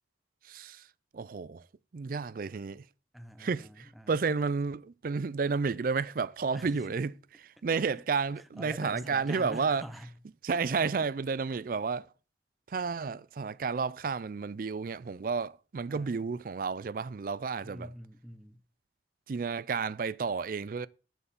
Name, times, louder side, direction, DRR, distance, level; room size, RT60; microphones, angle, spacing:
voice 1, 0.4-0.9 1.1-1.6 1.9-2.8 3.4-7.1 7.4-9.8 10.4-12.1 12.7-17.9 19.3-20.9, right 5 dB, 50° right, 0.4 m, -31 dB
voice 2, 3.1-4.2 6.5-7.0 7.7-8.0 8.4-10.2 11.0-11.6 15.9-16.4 17.6-18.6, equal, ahead, 0.6 m, -46 dB
10.0 x 4.7 x 6.8 m
head